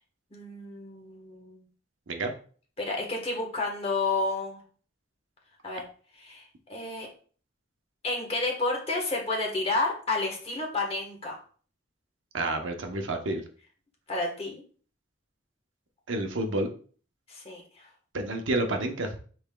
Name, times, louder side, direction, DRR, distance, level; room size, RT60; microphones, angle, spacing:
voice 1, 0.3-1.6 2.8-4.6 5.6-5.8 6.1-7.1 8.0-11.4 14.1-14.6 17.3-17.9, left 3 dB, 30° left, 0 dB, 1.2 m, -31 dB
voice 2, 12.3-13.4 16.1-16.7 18.1-19.2, right 2 dB, 90° right, 4 dB, 0.8 m, -29 dB
5.5 x 4.1 x 2.2 m, 0.42 s
head